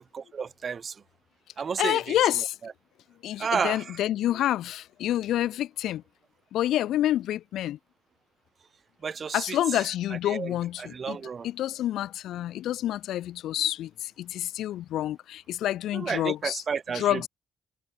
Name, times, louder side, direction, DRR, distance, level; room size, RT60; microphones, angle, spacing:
voice 1, 0.1-0.9 1.6-2.2 2.6-2.7 3.4-3.8 9.0-9.6 10.3-11.5 15.9-17.3, right 6 dB, 45° right, 1.9 m, -31 dB
voice 2, 1.8-2.5 3.2-6.0 6.5-7.8 9.3-11.2 11.4-16.6 16.9-17.3, left 13 dB, 80° left, 0.8 m, -28 dB
cardioid pair, 90°, 0 cm